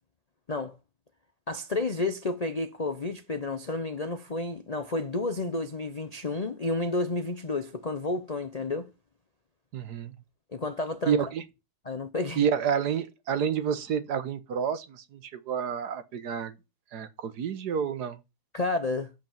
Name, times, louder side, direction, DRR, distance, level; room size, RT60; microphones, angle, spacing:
voice 1, 1.5-8.9 10.5-11.2 11.8-12.5 18.5-19.1, left 2 dB, 55° left, 0.4 m, -31 dB
voice 2, 9.7-10.1 11.1-11.4 12.4-16.5 16.9-18.2, right 7 dB, 65° right, 1.5 m, -29 dB
8.1 x 5.2 x 7.2 m
omnidirectional pair, 2.0 m